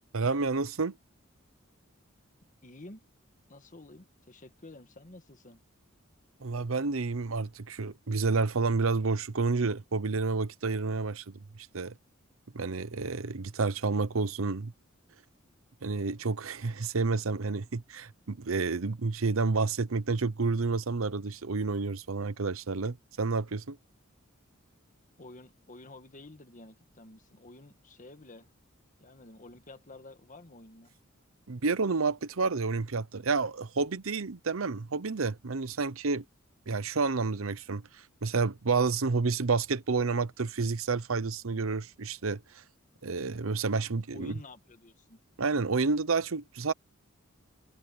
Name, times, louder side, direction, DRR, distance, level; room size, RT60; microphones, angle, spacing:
voice 1, 0.1-1.0 6.4-11.9 12.5-14.7 15.8-23.8 31.5-36.2 36.7-42.6 43.0-44.3 45.4-46.7, right 4 dB, 75° right, 0.8 m, -30 dB
voice 2, 2.6-3.0 3.5-5.6 25.2-28.5 29.0-31.0 44.1-45.2, left 2 dB, 40° left, 1.6 m, -50 dB
open air
head